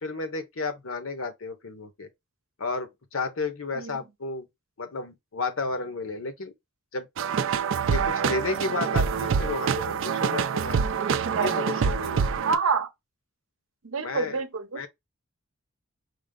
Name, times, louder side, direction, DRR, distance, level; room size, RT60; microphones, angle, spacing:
voice 1, 0.0-2.1 2.6-4.5 4.8-6.5 6.9-7.1 7.8-10.8 11.3-12.2 14.0-14.4 14.7-14.9, left 3 dB, 75° left, 1.0 m, -32 dB
sound 1, 7.2-12.5, right 6 dB, 70° right, 0.4 m, -26 dB
voice 2, 12.4-12.9 13.8-14.9, right 4 dB, 85° right, 0.8 m, -27 dB
5.0 x 2.0 x 3.7 m
head